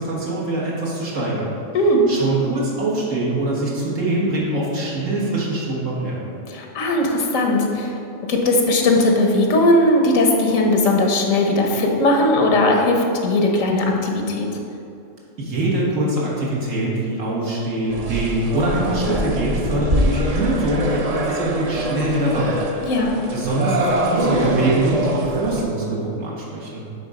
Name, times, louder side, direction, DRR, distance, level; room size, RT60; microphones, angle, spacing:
voice 1, 0.0-1.5 2.1-6.2 15.4-22.6 23.3-26.8, right 1 dB, 80° right, -5 dB, 1.7 m, -23 dB
voice 2, 6.5-7.9 8.3-14.5 22.9-23.1, left 1 dB, 90° left, 1 dB, 1.3 m, -18 dB
sound 1, 17.9-25.7, right 1 dB, 45° right, 0.5 m, -24 dB
8.5 x 3.7 x 5.2 m, 2.6 s
omnidirectional pair, 1.3 m